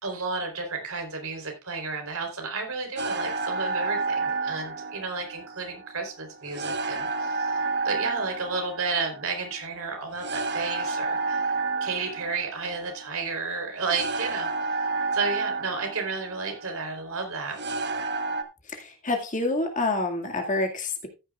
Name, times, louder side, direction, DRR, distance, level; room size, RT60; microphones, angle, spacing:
voice 1, 0.0-11.4 11.8-14.5 15.1-17.6, right 4 dB, 80° right, 3 dB, 3.8 m, -32 dB
sound 1, 3.0-18.4, right 3 dB, 55° right, 1.2 m, -31 dB
voice 2, 18.6-21.1, left 2 dB, 35° left, 2 dB, 2.1 m, -28 dB
14.0 x 9.8 x 2.4 m, 0.29 s
head